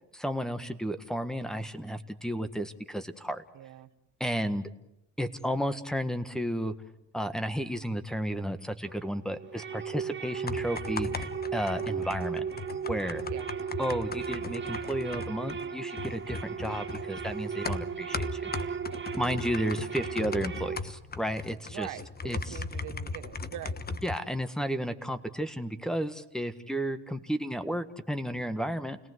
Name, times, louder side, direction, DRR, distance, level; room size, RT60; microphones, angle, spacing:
voice 1, 0.1-3.4 4.2-4.7 5.2-6.7 7.1-12.4 12.9-13.2 13.8-18.7 19.2-21.9 22.2-22.6 24.0-29.0, equal, ahead, 10 dB, 1.7 m, -33 dB
voice 2, 3.5-3.9 4.4-4.5 11.9-12.1 13.3-13.5 21.7-24.0, right 13 dB, 90° right, 10 dB, 1.3 m, -43 dB
sound 1, 8.8-20.8, right 7 dB, 40° right, 1.6 m, -36 dB
sound 2, 10.3-24.2, left 4 dB, 30° left, 1.3 m, -38 dB
29.5 x 18.5 x 8.2 m, 0.86 s
cardioid pair, 90°, 30 cm